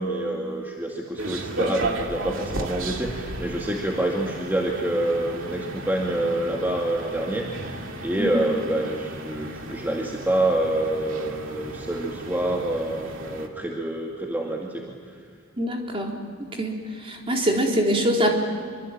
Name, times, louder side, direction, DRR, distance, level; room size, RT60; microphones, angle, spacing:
voice 1, 0.0-14.9, right 1 dB, 10° right, -1 dB, 2.2 m, -27 dB
sound 1, 1.2-13.5, right 2 dB, 65° right, 2.5 m, -34 dB
voice 2, 15.6-16.2 16.5-18.4, equal, 25° right, 1 dB, 3.9 m, -24 dB
26.0 x 24.5 x 8.9 m, 2.1 s
head